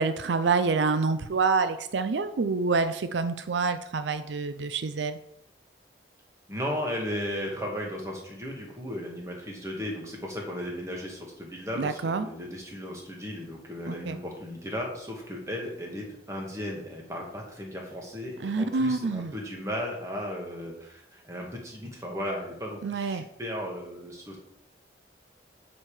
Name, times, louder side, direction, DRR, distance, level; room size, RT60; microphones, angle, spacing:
voice 1, 0.0-5.2 11.8-12.3 13.9-14.2 18.4-19.3 22.8-23.2, right 4 dB, 80° right, 11 dB, 0.5 m, -27 dB
voice 2, 6.5-24.4, equal, 15° right, -1 dB, 1.8 m, -35 dB
8.1 x 5.3 x 4.9 m, 0.80 s
head